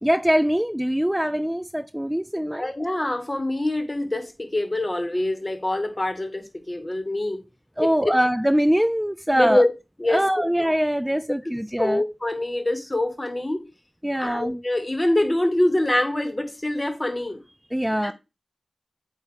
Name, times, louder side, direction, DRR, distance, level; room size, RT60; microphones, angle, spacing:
voice 1, 0.0-2.7 7.8-9.6 10.1-12.0 14.0-14.6 17.7-18.1, equal, 10° right, 0.3 m, -23 dB
voice 2, 2.6-7.4 7.8-8.1 9.3-9.7 10.0-10.4 11.8-13.6 14.2-17.4 18.0-18.1, left 1 dB, 30° left, 1.6 m, -25 dB
8.1 x 2.8 x 4.8 m
cardioid pair, 40°, 0 cm